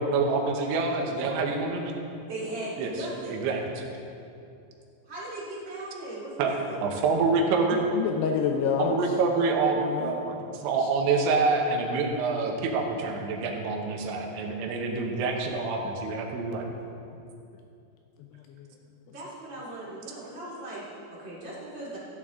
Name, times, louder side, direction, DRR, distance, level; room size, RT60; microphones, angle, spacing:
voice 1, 0.0-1.9 2.8-3.8 6.4-7.9 8.8-16.7 20.2-20.3, right 4 dB, 85° right, 2 dB, 3.4 m, -27 dB
voice 2, 2.3-3.4 5.1-6.8 19.1-22.0, right 2 dB, 35° right, -8 dB, 2.0 m, -38 dB
voice 3, 7.7-9.0 9.8-10.1 10.8-10.9 16.6-16.7 18.3-18.7, left 7 dB, 80° left, 3 dB, 2.5 m, -29 dB
15.0 x 9.0 x 3.7 m, 2.6 s
omnidirectional pair, 5.2 m